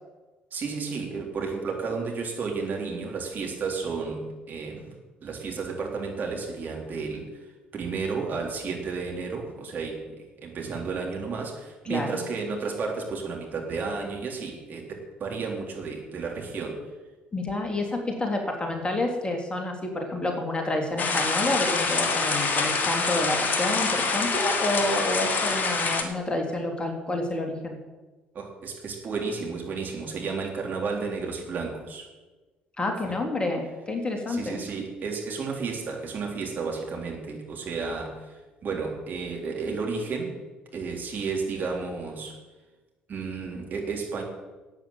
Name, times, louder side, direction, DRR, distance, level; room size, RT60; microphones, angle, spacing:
voice 1, 0.5-4.9 5.2-7.3 7.7-16.8 28.3-32.1 34.3-38.4 38.6-40.3 40.7-42.4 43.1-44.2, right 4 dB, 40° right, 0 dB, 3.7 m, -32 dB
voice 2, 11.8-12.2 17.3-27.8 32.8-34.6, left 2 dB, 20° left, 3 dB, 3.2 m, -29 dB
sound 1, 21.0-26.0, left 4 dB, 40° left, 2.2 m, -26 dB
12.5 x 9.0 x 8.8 m, 1.2 s
figure-of-eight pair, 50°, 5 cm